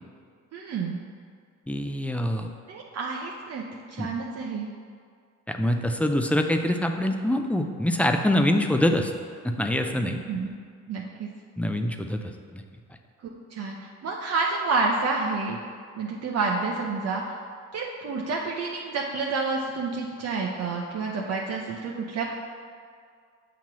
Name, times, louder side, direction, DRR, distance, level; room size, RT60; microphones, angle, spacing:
voice 1, 0.5-1.0 2.7-3.6 3.9-4.7 10.3-10.5 10.9-11.3 13.5-15.6 16.0-17.2 17.7-22.3, right 4 dB, 55° right, -2 dB, 0.7 m, -29 dB
voice 2, 1.7-2.5 4.0-4.1 5.5-9.1 9.4-10.2 11.6-12.2 12.5-12.6, left 1 dB, 5° left, 5 dB, 0.4 m, -24 dB
7.2 x 3.0 x 6.0 m, 2.1 s
cardioid pair, 90°, 30 cm